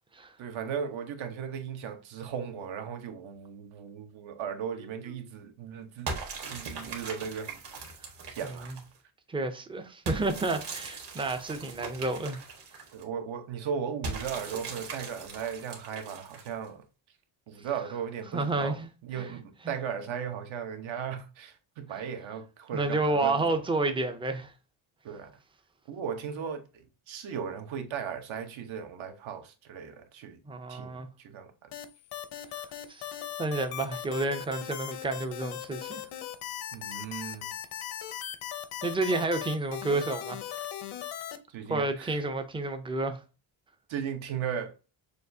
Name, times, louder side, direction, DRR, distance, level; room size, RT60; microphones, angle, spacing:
voice 1, 0.4-6.2 6.5-7.5 8.3-8.7 12.9-16.8 17.5-23.6 25.0-25.3 25.9-30.4 30.7-31.7 36.7-37.5 41.5-42.2 43.9-44.8, right 7 dB, 75° right, 0.9 m, -37 dB
sound 1, 6.1-9.0 10.1-13.0 14.0-16.7, right 3 dB, 55° right, 1.4 m, -39 dB
voice 2, 8.4-8.8 9.3-12.4 18.3-19.4 19.6-19.7 21.9-22.0 22.7-24.5 30.5-31.1 32.9-33.1 33.4-36.0 38.8-40.4 41.7-43.2, right 2 dB, 10° right, 0.3 m, -30 dB
sound 2, 31.7-41.4, left 11 dB, 80° left, 0.7 m, -38 dB
6.5 x 2.4 x 2.6 m
cardioid pair, 145°, 48 cm